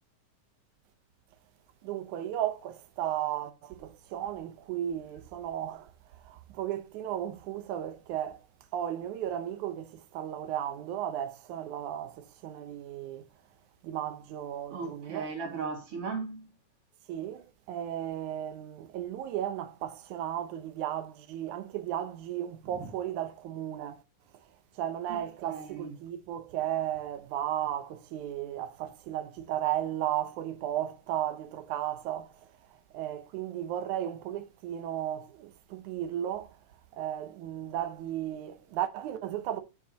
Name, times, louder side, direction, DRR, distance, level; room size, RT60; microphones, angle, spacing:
voice 1, 1.8-5.9 6.2-8.4 8.7-13.3 13.8-15.3 17.1-24.0 24.8-32.3 32.9-36.6 36.9-39.6, right 11 dB, 75° right, 2.1 m, -35 dB
voice 2, 14.7-16.5 25.1-25.2 25.5-25.9, right 5 dB, 45° right, 2.9 m, -36 dB
8.4 x 7.3 x 2.8 m
omnidirectional pair, 3.7 m